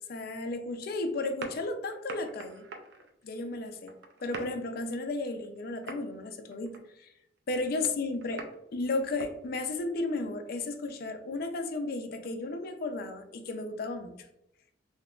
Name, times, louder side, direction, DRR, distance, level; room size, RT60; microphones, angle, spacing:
voice 1, 0.1-2.6 3.2-3.9 4.2-7.1 7.5-8.4 8.7-14.1, left 2 dB, 55° left, 6 dB, 0.4 m, -34 dB
sound 1, 1.2-3.2 3.8-4.6 5.3-5.6 5.8-6.2 6.5-6.9 7.4-8.6 9.0-9.3 9.9-10.0 12.2-12.3, right 2 dB, 75° right, 0.5 m, -43 dB
3.5 x 2.8 x 2.3 m, 0.80 s
head